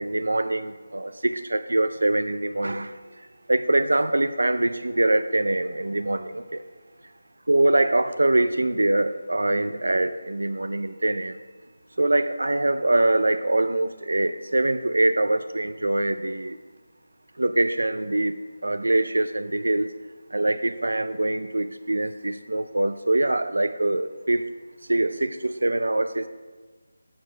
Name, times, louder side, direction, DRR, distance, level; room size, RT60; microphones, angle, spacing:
voice 1, 0.0-3.0 3.5-6.6 7.5-11.4 12.0-16.6 17.4-18.3 18.6-19.9 20.3-24.4 24.9-26.3, right 2 dB, 85° right, 11 dB, 0.4 m, -23 dB
7.4 x 4.7 x 6.0 m, 1.3 s
figure-of-eight pair, 165°, 0 cm